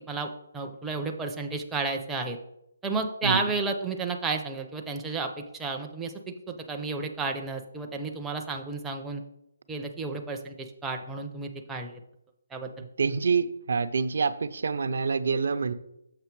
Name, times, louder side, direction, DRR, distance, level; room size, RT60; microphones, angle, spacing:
voice 1, 0.0-2.4 2.8-6.1 6.5-9.2 9.7-12.0 12.5-12.7, right 3 dB, 5° right, 2 dB, 0.4 m, -32 dB
voice 2, 12.8-15.7, right 5 dB, 65° right, 12 dB, 0.5 m, -27 dB
6.8 x 5.5 x 4.6 m, 0.80 s
hypercardioid pair, 170°, 0 cm